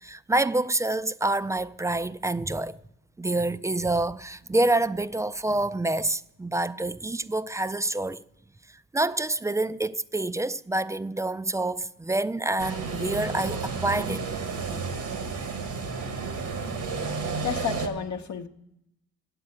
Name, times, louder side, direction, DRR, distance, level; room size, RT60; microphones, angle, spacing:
voice 1, 0.0-2.8 3.2-8.2 8.9-14.2, right 2 dB, 10° right, 0.3 m, -27 dB
sound 1, 12.6-17.9, right 4 dB, 75° right, 1.5 m, -32 dB
voice 2, 17.4-18.5, left 6 dB, 65° left, 0.8 m, -31 dB
8.3 x 7.5 x 8.6 m
supercardioid pair, 60°, 31 cm